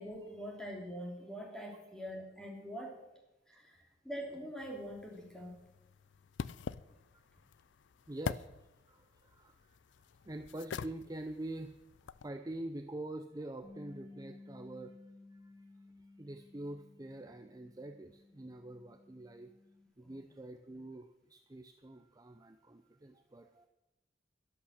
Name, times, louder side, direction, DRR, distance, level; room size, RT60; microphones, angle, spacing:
voice 1, 0.0-3.0 3.5-5.6 6.9-7.0 20.0-20.2, equal, 5° left, -1 dB, 3.0 m, -44 dB
sound 1, 4.6-12.3, left 5 dB, 80° left, 0.4 m, -45 dB
voice 2, 8.1-8.5 8.9-9.8 10.2-11.7 12.2-15.0 15.3-15.6 16.2-19.5 20.0-23.7, right 1 dB, 20° right, 7 dB, 0.6 m, -45 dB
Bass guitar, 13.6-19.9, left 2 dB, 30° left, 2.2 m, -56 dB
12.0 x 11.5 x 6.5 m, 0.98 s
head